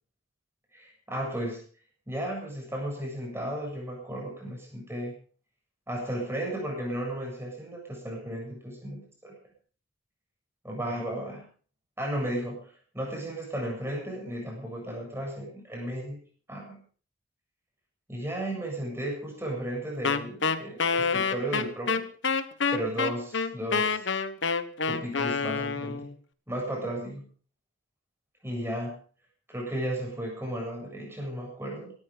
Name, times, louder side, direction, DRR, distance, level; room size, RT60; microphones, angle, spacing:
voice 1, 0.7-1.6 2.1-5.1 5.9-9.4 10.6-11.5 12.0-16.2 16.5-16.8 18.1-22.1 22.7-24.1 24.9-26.1 26.5-27.3 28.4-29.0 29.5-31.9, right 1 dB, 10° right, 0 dB, 7.8 m, -34 dB
Wind instrument woodwind instrument, 20.0-26.1, left 5 dB, 70° left, 1.2 m, -27 dB
17.5 x 14.0 x 5.1 m, 0.43 s
head